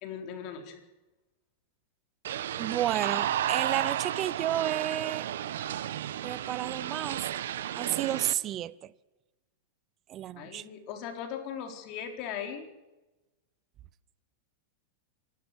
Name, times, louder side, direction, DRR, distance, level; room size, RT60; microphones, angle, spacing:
voice 1, 0.0-0.8 10.4-12.7, left 8 dB, 40° left, 4.0 m, -38 dB
sound 1, 2.2-8.3, right 11 dB, 80° right, 1.1 m, -32 dB
voice 2, 2.6-5.3 6.2-8.9 10.1-10.7, right 12 dB, 30° right, 0.7 m, -32 dB
26.5 x 12.5 x 8.1 m
supercardioid pair, 145°, 0 cm